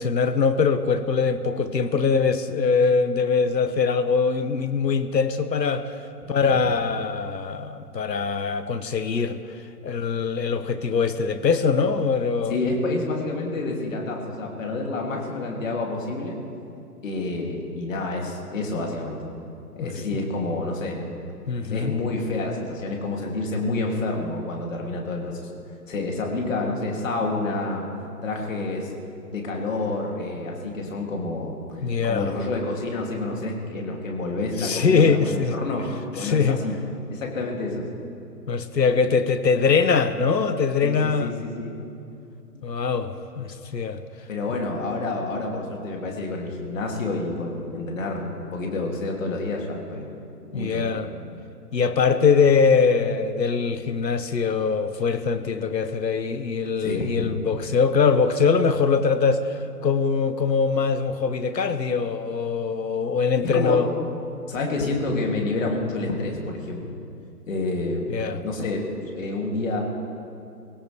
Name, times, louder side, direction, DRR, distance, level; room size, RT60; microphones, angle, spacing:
voice 1, 0.0-5.9 6.3-9.4 9.8-12.5 19.8-20.0 21.5-21.9 31.8-32.3 34.6-35.6 36.2-36.6 38.5-41.3 42.6-44.0 50.5-51.1 51.7-63.9 68.1-68.4, left 5 dB, 85° left, 11 dB, 1.1 m, -22 dB
voice 2, 12.5-16.4 17.0-19.2 19.8-21.0 21.7-25.5 25.9-27.9 28.2-28.9 29.3-31.6 32.0-35.9 36.1-36.8 37.1-37.9 40.8-41.8 44.3-50.1 50.5-51.0 56.8-57.7 63.4-63.8 64.5-66.9 67.5-68.1 68.4-68.8 69.2-69.8, left 2 dB, 50° left, 0 dB, 3.0 m, -28 dB
21.0 x 17.0 x 3.5 m, 2.7 s
figure-of-eight pair, 140°, 49 cm